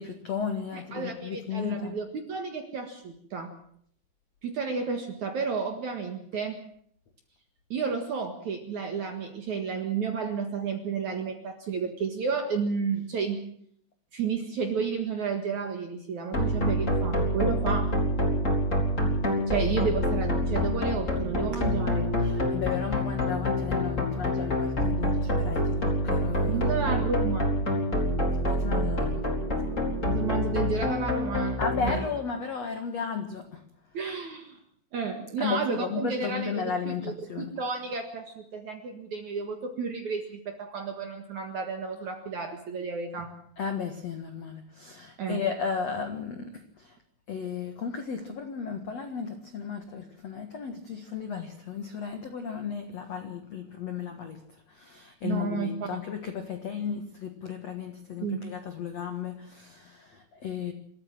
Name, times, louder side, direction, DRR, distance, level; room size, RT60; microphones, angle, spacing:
voice 1, 0.0-2.0 22.2-26.6 28.5-29.3 31.6-33.6 35.4-37.5 43.6-47.0 47.3-60.7, left 6 dB, 80° left, 6 dB, 1.5 m, -34 dB
voice 2, 0.7-3.5 4.4-6.6 7.7-13.4 14.1-17.9 19.5-22.1 26.5-27.5 30.0-32.0 33.9-34.6 34.9-43.3 45.2-45.4 55.2-55.9 58.2-58.4, right 5 dB, 55° right, 5 dB, 2.2 m, -32 dB
sound 1, 16.3-31.9, equal, 15° left, 4.1 m, -27 dB
26.5 x 14.0 x 7.5 m, 0.66 s
omnidirectional pair, 5.7 m